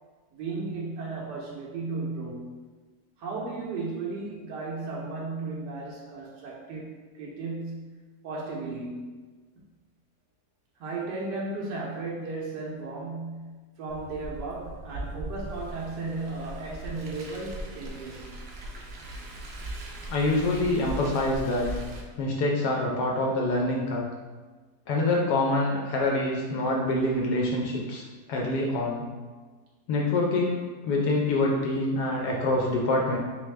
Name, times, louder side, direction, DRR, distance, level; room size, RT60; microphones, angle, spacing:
voice 1, 0.3-2.6 3.2-9.2 10.8-18.4, right 3 dB, 90° right, -3 dB, 1.3 m, -35 dB
Car, 13.9-22.0, right 2 dB, 65° right, 0.6 m, -39 dB
voice 2, 20.1-21.7 22.2-24.1 24.9-28.0 28.3-29.1 29.9-33.2, left 2 dB, 75° left, -1 dB, 1.2 m, -26 dB
3.4 x 3.3 x 3.2 m, 1.3 s
omnidirectional pair, 1.8 m